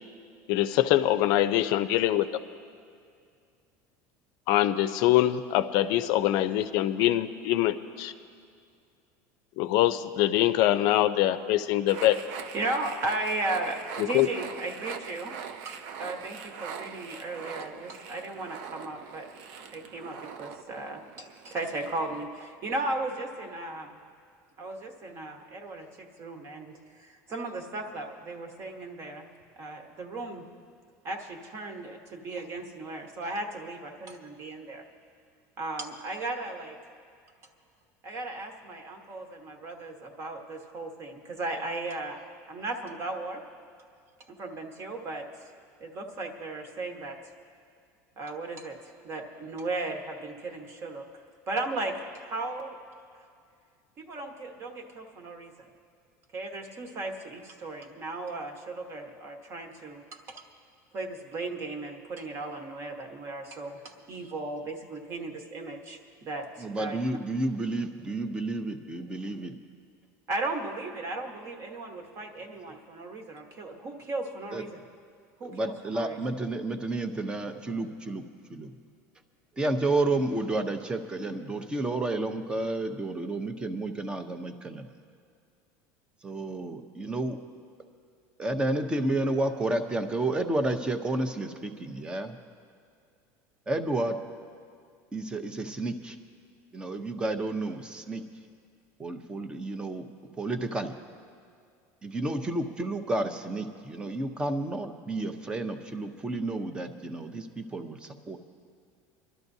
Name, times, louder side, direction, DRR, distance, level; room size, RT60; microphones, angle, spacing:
voice 1, 0.5-2.3 4.5-8.1 9.6-12.2 14.0-14.3, left 13 dB, 60° left, 12 dB, 0.5 m, -24 dB
sound 1, 11.9-22.3, right 7 dB, 60° right, 0.6 m, -42 dB
voice 2, 12.5-15.3 15.6-19.3 19.7-24.0 24.6-29.3 29.6-30.5 31.0-34.8 35.6-36.8 38.0-43.4 44.3-45.5 45.8-47.2 48.2-51.0 51.5-52.8 54.0-55.7 56.3-60.4 60.9-67.0 70.3-74.8 75.4-76.2, right 2 dB, 35° right, 4 dB, 1.2 m, -36 dB
voice 3, 66.6-69.5 74.5-74.6 75.4-78.7 79.6-84.9 86.2-87.4 88.4-92.4 93.7-94.2 95.1-96.2 96.7-98.2 99.0-100.1 100.4-100.9 102.0-108.4, right 2 dB, 10° right, 8 dB, 0.7 m, -31 dB
25.5 x 12.5 x 2.7 m, 2.3 s
cardioid pair, 155°, 8 cm